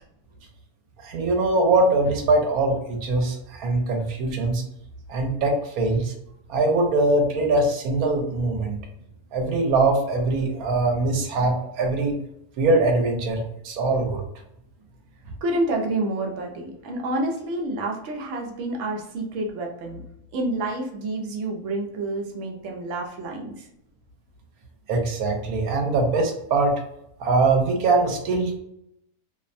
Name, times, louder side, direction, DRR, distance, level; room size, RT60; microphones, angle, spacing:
voice 1, 1.0-4.6 5.1-6.1 6.5-8.8 9.3-12.1 12.6-14.2 24.9-26.8 27.2-28.6, right 2 dB, 80° right, 2 dB, 1.1 m, -22 dB
voice 2, 15.4-20.0 20.3-23.7, right 2 dB, 65° right, 1 dB, 0.9 m, -28 dB
2.7 x 2.1 x 2.5 m, 0.80 s
omnidirectional pair, 1.5 m